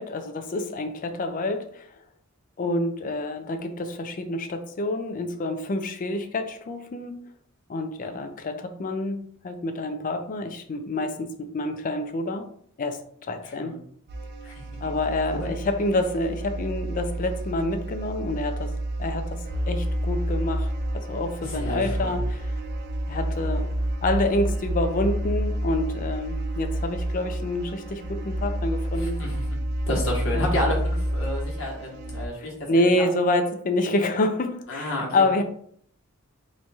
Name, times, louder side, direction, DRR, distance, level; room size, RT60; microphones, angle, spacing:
voice 1, 0.0-1.9 2.6-7.2 7.7-12.5 12.8-13.0 13.3-13.8 14.8-18.7 19.0-22.5 23.1-23.7 24.0-29.2 30.3-30.5 32.4-35.4, left 2 dB, 40° left, 7 dB, 0.4 m, -27 dB
voice 2, 13.4-13.8 14.4-14.6 15.3-15.5 21.4-22.2 28.9-29.5 29.9-32.9 34.7-35.2, left 1 dB, 70° left, -3 dB, 1.1 m, -31 dB
sound 1, 14.1-32.3, right 1 dB, 55° right, 0.5 m, -29 dB
3.1 x 2.3 x 4.0 m, 0.63 s
head